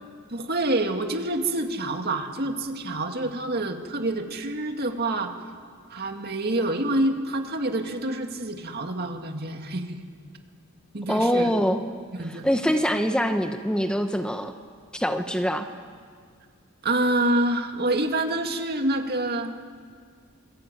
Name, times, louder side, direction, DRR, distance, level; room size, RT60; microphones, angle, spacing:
voice 1, 0.3-5.3 5.9-10.0 10.9-11.5 12.2-12.5 16.8-19.6, right 1 dB, 50° right, 4 dB, 2.3 m, -27 dB
voice 2, 11.1-11.8 12.3-14.5 14.9-15.7, equal, 5° left, 6 dB, 1.0 m, -24 dB
27.5 x 21.5 x 9.1 m, 2.1 s
head